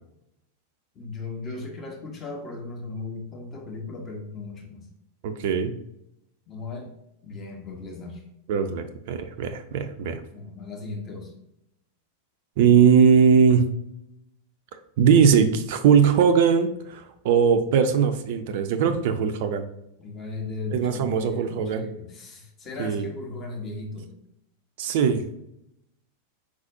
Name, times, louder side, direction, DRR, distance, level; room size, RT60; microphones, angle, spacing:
voice 1, 0.9-4.9 6.5-6.9 7.2-8.2 10.3-11.3 20.0-24.1, left 3 dB, 30° left, 0 dB, 1.2 m, -36 dB
voice 2, 5.2-5.7 8.5-10.2 12.6-13.6 15.0-19.7 20.7-21.8 22.8-23.1 24.8-25.2, right 6 dB, 50° right, 8 dB, 0.4 m, -20 dB
4.7 x 4.0 x 2.6 m, 0.82 s
figure-of-eight pair, 90°, 0 cm